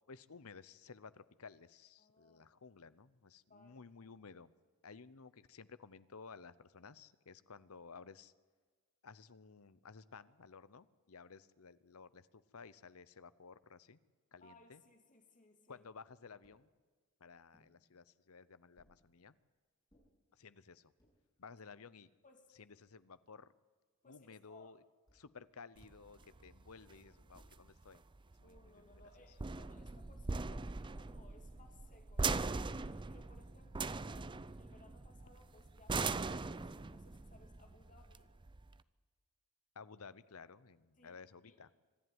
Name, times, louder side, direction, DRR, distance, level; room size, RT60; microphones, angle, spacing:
voice 1, 0.1-4.5 4.8-8.3 9.0-14.0 14.3-14.8 15.7-16.7 17.2-19.3 20.3-20.9 21.4-22.1 22.5-23.5 24.0-24.8 25.1-28.0 28.4-29.0 39.7-41.7, left 5 dB, 70° left, 16 dB, 0.8 m, -55 dB
voice 2, 2.0-2.5 3.5-4.2 14.4-15.9 16.3-16.4 21.5-21.6 22.2-22.5 24.0-24.7 28.4-32.7 33.1-38.3 41.0-41.2 41.4-41.6, left 2 dB, 35° left, 4 dB, 2.7 m, -64 dB
sound 1, 16.4-16.7 17.5-17.8 18.8-19.0 19.9-20.1 20.8-21.2 21.9-22.0 22.2-23.2 25.1-25.4 26.2-26.5 27.3-27.7 28.5-28.9 29.6-30.0 31.0-31.3 32.2-32.7, equal, 20° left, 7.7 m, -72 dB
sound 2, 25.8-38.8, right 4 dB, 20° right, 0.5 m, -41 dB
25.5 x 11.0 x 9.5 m, 1.4 s
head